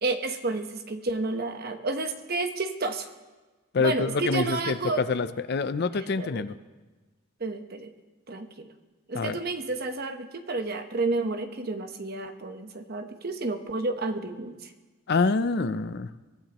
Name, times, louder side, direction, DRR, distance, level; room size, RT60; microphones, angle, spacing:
voice 1, 0.0-3.1 3.8-5.0 6.0-6.5 7.4-7.9 8.3-8.7 9.1-14.7, right 3 dB, 45° right, 7 dB, 1.0 m, -31 dB
voice 2, 3.7-6.5 9.1-9.4 15.1-16.1, left 4 dB, 50° left, 12 dB, 0.5 m, -26 dB
23.5 x 15.0 x 3.0 m, 1.3 s
head